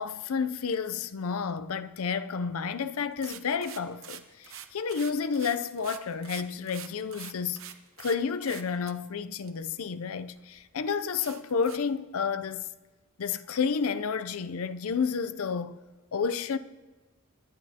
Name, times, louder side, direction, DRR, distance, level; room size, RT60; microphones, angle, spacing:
voice 1, 0.0-7.6 8.0-12.6 13.2-15.8 16.1-16.6, left 6 dB, 85° left, 0.5 m, -31 dB
sound 1, 3.0-8.2 8.4-8.9 9.5-9.6 10.1-10.2 10.6-10.7 11.2-11.8, right 10 dB, 65° right, 0.8 m, -44 dB
26.0 x 10.5 x 2.8 m
head